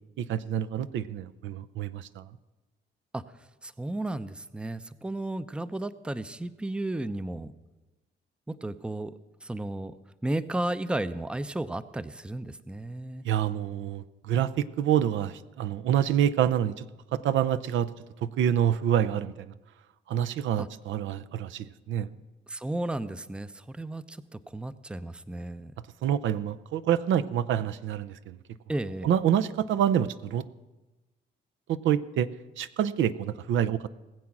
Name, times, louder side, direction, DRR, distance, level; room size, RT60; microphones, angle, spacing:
voice 1, 0.2-2.2 13.2-16.9 17.1-17.9 18.2-19.3 20.1-22.1 26.0-28.4 29.0-30.4 31.7-32.3 32.6-33.9, right 10 dB, 75° right, 12 dB, 0.6 m, -27 dB
voice 2, 3.6-7.5 8.5-10.0 10.2-13.2 20.6-20.7 22.5-25.7 28.7-29.1, right 1 dB, 5° right, 14 dB, 0.5 m, -34 dB
19.5 x 7.6 x 5.9 m, 1.1 s
cardioid pair, 90°, 20 cm